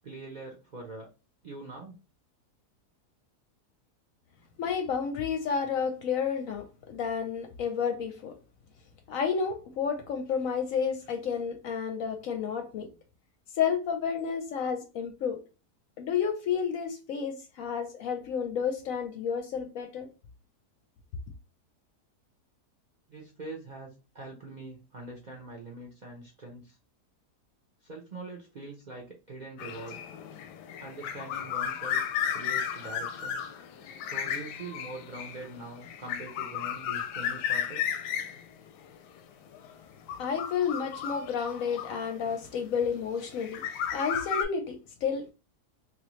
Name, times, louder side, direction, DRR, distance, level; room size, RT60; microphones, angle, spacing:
voice 1, 0.0-1.1 1.4-2.0 23.1-26.8 27.8-30.0 30.8-32.0 32.3-33.4 34.0-37.8, right 2 dB, 50° right, 0.5 m, -43 dB
voice 2, 4.6-8.4 9.1-12.9 13.6-15.4 16.0-20.1 40.2-43.6 43.9-45.3, left 6 dB, 70° left, 0.9 m, -31 dB
sound 1, 29.6-42.5 43.2-44.4, left 9 dB, 90° left, 1.2 m, -34 dB
3.3 x 2.5 x 3.0 m
omnidirectional pair, 1.7 m